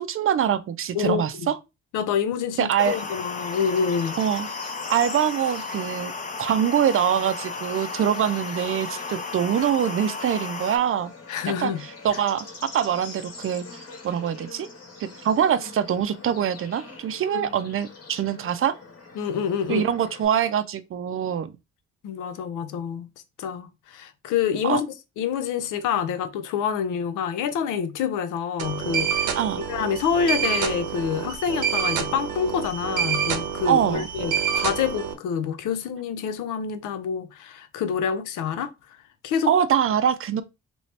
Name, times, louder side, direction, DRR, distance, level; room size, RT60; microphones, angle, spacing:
voice 1, 0.0-1.5 2.6-3.0 4.2-4.5 4.9-6.1 6.4-11.1 11.6-12.5 12.7-13.7 14.0-14.7 15.0-18.7 19.7-21.5 24.6-24.8 29.4-29.6 33.7-34.1 39.5-40.4, right 9 dB, 45° right, 0.4 m, -24 dB
voice 2, 0.9-1.5 1.9-4.2 11.3-11.8 12.1-12.2 17.3-17.5 19.2-19.9 22.0-23.1 23.4-24.9 25.2-29.4 29.7-38.7 39.2-39.5, left 7 dB, 90° left, 0.6 m, -27 dB
Bird / Insect, 2.8-20.2, left 3 dB, 55° left, 1.3 m, -44 dB
sound 1, 2.8-10.8, left 4 dB, 25° left, 0.6 m, -34 dB
sound 2, 28.6-35.1, right 8 dB, 80° right, 0.7 m, -27 dB
3.0 x 2.7 x 3.2 m
cardioid pair, 90°, 30 cm